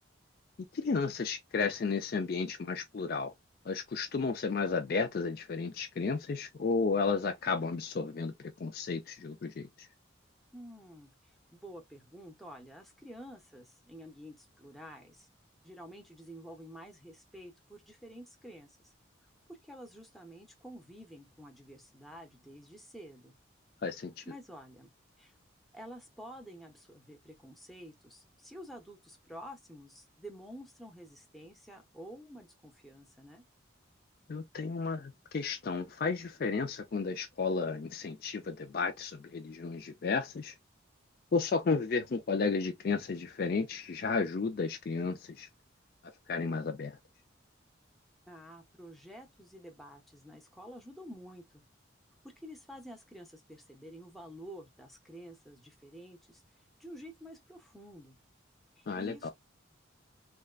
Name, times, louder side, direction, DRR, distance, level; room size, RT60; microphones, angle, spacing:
voice 1, 0.7-3.3 3.6-9.9 23.8-24.2 34.3-40.6 41.3-45.5 46.3-47.0 58.9-59.3, left 4 dB, 50° left, 0.4 m, -33 dB
voice 2, 10.5-15.3 15.6-18.9 19.6-23.3 24.3-24.9 25.2-25.3 25.7-33.4 48.3-51.6 52.2-56.4 56.8-58.2 58.8-59.3, equal, ahead, 0.7 m, -50 dB
3.5 x 2.2 x 2.3 m
head